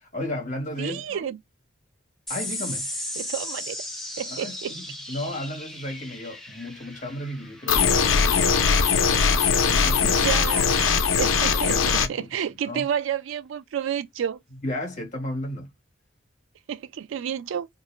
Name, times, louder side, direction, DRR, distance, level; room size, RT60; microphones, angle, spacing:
voice 1, 0.0-1.3 2.3-2.9 4.3-8.5 9.0-10.3 11.5-12.3 12.7-12.8 14.6-15.7, left 1 dB, 35° left, 0.8 m, -34 dB
voice 2, 0.8-1.4 3.2-3.8 4.2-4.7 8.3-8.4 9.8-14.4 16.7-17.7, right 9 dB, 75° right, 0.3 m, -30 dB
sound 1, 2.3-9.1, left 1 dB, ahead, 0.4 m, -36 dB
sound 2, 7.7-12.1, left 5 dB, 75° left, 0.5 m, -20 dB
2.4 x 2.1 x 2.9 m
head